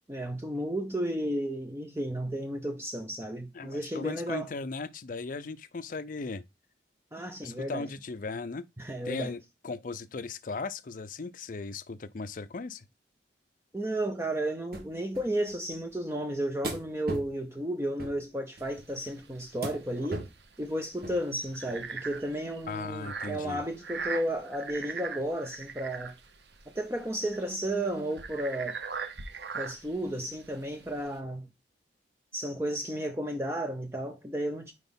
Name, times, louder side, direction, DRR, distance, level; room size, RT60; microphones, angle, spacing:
voice 1, 0.1-4.5 7.1-7.9 8.8-9.3 13.7-20.3 20.6-26.2 26.7-28.8 29.5-31.5 32.3-34.7, right 1 dB, 15° right, 0.6 m, -33 dB
voice 2, 3.5-6.4 7.4-8.7 9.0-12.9 22.7-23.6, left 4 dB, 50° left, 0.5 m, -37 dB
sound 1, 14.7-14.9 15.1-15.9 16.6-17.3 18.0-18.2 18.6-19.1 19.6-19.8 20.1-20.4 21.0-21.2 21.7-21.8 22.1-22.2, right 2 dB, 55° right, 1.4 m, -38 dB
sound 2, 18.6-31.2, right 5 dB, 75° right, 0.9 m, -41 dB
4.9 x 4.1 x 5.2 m
head